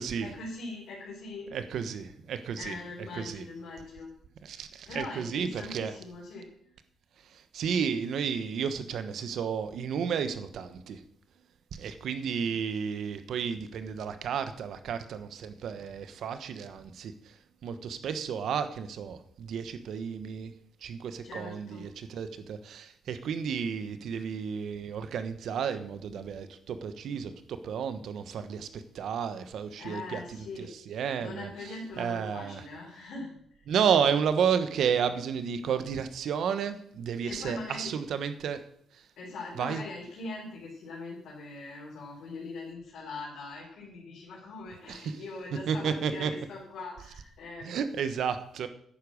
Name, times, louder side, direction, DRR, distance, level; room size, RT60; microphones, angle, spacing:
voice 1, 0.2-1.5 2.6-4.1 4.9-6.5 21.2-21.9 29.8-30.7 31.2-33.7 37.3-38.0 39.2-47.7, left 3 dB, 70° left, -4 dB, 4.1 m, -41 dB
voice 2, 1.5-2.7 3.1-3.4 4.4-5.9 7.5-11.0 11.7-17.1 17.6-20.5 20.8-27.3 27.6-30.2 30.6-31.5 32.0-32.6 33.7-38.6 39.6-39.8 44.9-45.0 45.7-46.3 47.6-48.7, right 7 dB, 70° right, 10 dB, 1.2 m, -32 dB
10.5 x 8.6 x 6.4 m, 0.66 s
cardioid pair, 90°, 0 cm